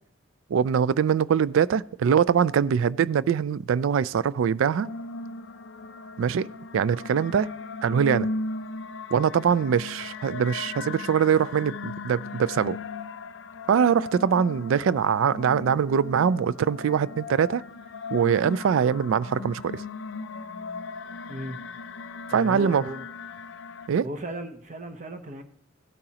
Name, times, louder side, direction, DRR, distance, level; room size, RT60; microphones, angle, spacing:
voice 1, 0.5-4.9 6.2-6.5 6.7-7.5 7.8-8.3 9.1-12.8 13.7-17.6 18.1-19.8 22.3-22.8 23.9-24.1, right 7 dB, 75° right, 0.3 m, -23 dB
sound 1, 4.8-23.9, left 3 dB, 65° left, 0.4 m, -37 dB
voice 2, 22.3-23.0 24.0-25.4, right 1 dB, 35° right, 0.8 m, -35 dB
15.5 x 8.8 x 2.9 m
head